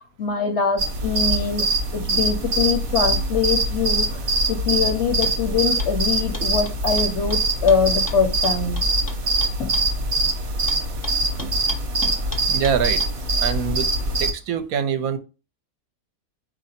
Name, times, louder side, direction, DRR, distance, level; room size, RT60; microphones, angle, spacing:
voice 1, 0.2-1.7 1.9-4.1 4.5-8.8 9.6-9.7 12.0-12.1, left 6 dB, 60° left, 6 dB, 0.8 m, -23 dB
sound 1, 0.8-14.3, right 2 dB, 50° right, 0.9 m, -23 dB
Hammering the nail, 5.2-5.4 5.8-5.9 6.3-9.9 10.7-13.1, left 1 dB, 30° left, 0.4 m, -37 dB
voice 2, 12.5-13.0 13.4-13.9 14.2-15.2, right 7 dB, 75° right, 9 dB, 1.0 m, -24 dB
4.2 x 2.7 x 4.1 m, 0.31 s
omnidirectional pair, 1.6 m